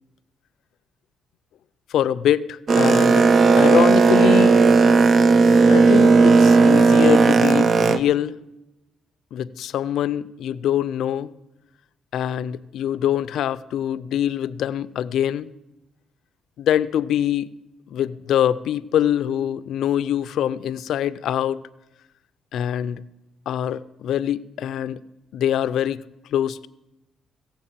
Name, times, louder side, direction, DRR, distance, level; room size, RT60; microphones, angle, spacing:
voice 1, 1.9-3.3 3.6-4.5 5.7-8.4 9.3-11.3 12.1-15.5 16.6-17.5 17.9-21.6 22.5-23.0 23.5-25.0 25.3-26.0 26.3-26.7, left 10 dB, 75° left, 0.5 m, -24 dB
Boat Water vehicle, 2.7-8.0, right 4 dB, 50° right, 0.6 m, -14 dB
16.5 x 7.2 x 7.4 m
cardioid pair, 90°, 0 cm